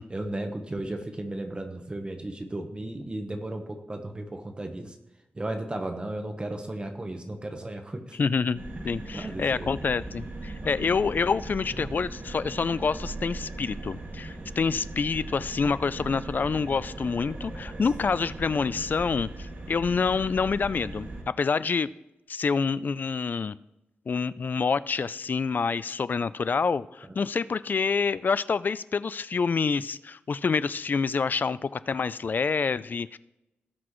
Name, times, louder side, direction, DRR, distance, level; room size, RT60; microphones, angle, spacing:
voice 1, 0.1-5.0 5.3-8.2 9.1-9.7 10.6-11.0 11.8-11.9 27.0-27.1, right 1 dB, 25° right, 5 dB, 1.1 m, -35 dB
voice 2, 8.2-21.1 21.4-21.9 22.3-23.5 24.1-33.2, left 5 dB, 50° left, 16 dB, 0.4 m, -27 dB
sound 1, 8.6-21.2, right 2 dB, 55° right, 2.2 m, -39 dB
18.5 x 6.2 x 3.1 m, 0.93 s
wide cardioid pair, 105°, 4 cm